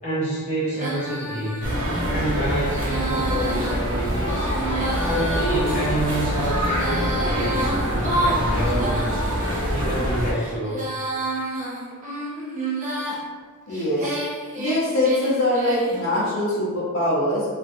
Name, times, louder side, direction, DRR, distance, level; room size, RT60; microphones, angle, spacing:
voice 1, 0.0-1.6 2.1-4.5 5.0-9.3 9.7-10.9, right 1 dB, 30° left, -9 dB, 0.8 m, -28 dB
Female singing, 0.7-9.6 10.2-13.2 13.7-16.0, right 1 dB, 35° right, 0.4 m, -30 dB
sound 1, 1.6-10.3, equal, 75° right, 0.7 m, -25 dB
voice 2, 13.7-14.1 14.6-17.5, left 1 dB, 70° left, -7 dB, 0.6 m, -23 dB
2.5 x 2.2 x 2.5 m, 1.6 s
head